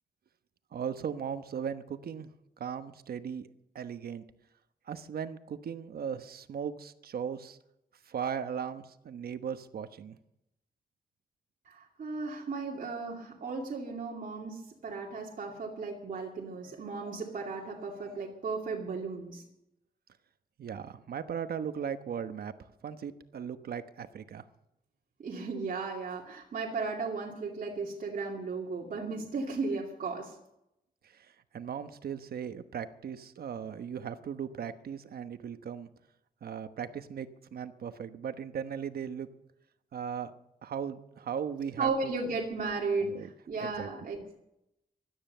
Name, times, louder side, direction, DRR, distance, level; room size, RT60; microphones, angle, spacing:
voice 1, 0.7-2.3 2.6-3.5 3.7-4.2 4.9-7.6 8.0-10.2 20.6-24.4 31.0-35.9 36.4-39.3 39.9-40.3 40.6-42.1 43.0-43.3 43.6-44.1, right 7 dB, 75° right, 10 dB, 1.1 m, -38 dB
voice 2, 11.7-19.4 25.2-30.3 41.8-43.1 43.5-44.4, right 4 dB, 60° right, -2 dB, 2.5 m, -35 dB
16.5 x 12.5 x 6.7 m, 0.84 s
wide cardioid pair, 140°, 16 cm